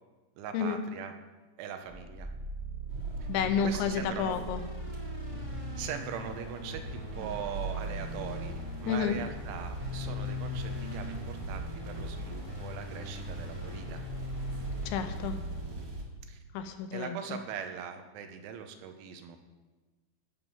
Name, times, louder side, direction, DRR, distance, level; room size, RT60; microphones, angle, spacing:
voice 1, 0.4-1.1 1.6-2.3 3.6-4.4 5.6-14.0 16.3-16.4 16.9-19.4, right 8 dB, 80° right, 6 dB, 3.3 m, -41 dB
sound 1, 1.9-16.5, left 1 dB, 15° right, 1.3 m, -41 dB
sound 2, 2.9-16.0, right 2 dB, 55° right, 2.4 m, -41 dB
voice 2, 3.3-4.6 8.9-9.2 14.9-15.4 16.5-17.4, left 7 dB, 80° left, 8 dB, 3.0 m, -30 dB
16.0 x 7.4 x 5.6 m, 1.2 s
omnidirectional pair, 5.5 m